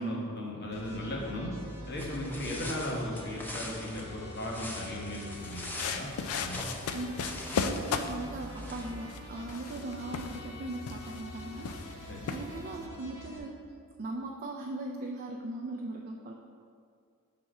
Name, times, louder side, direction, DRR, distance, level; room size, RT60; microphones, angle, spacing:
voice 1, 0.0-1.5 1.9-6.6 12.1-12.3, left 1 dB, 50° left, -2 dB, 1.1 m, -37 dB
sound 1, 0.7-13.4, equal, 30° left, 1.3 m, -46 dB
sound 2, 2.0-9.1, left 1 dB, 10° left, 0.5 m, -44 dB
sound 3, 5.4-12.9, left 5 dB, 90° left, 0.4 m, -37 dB
voice 2, 6.9-13.6 14.0-16.3, right 2 dB, 45° right, 0 dB, 0.4 m, -39 dB
6.1 x 4.1 x 4.7 m, 2.2 s
head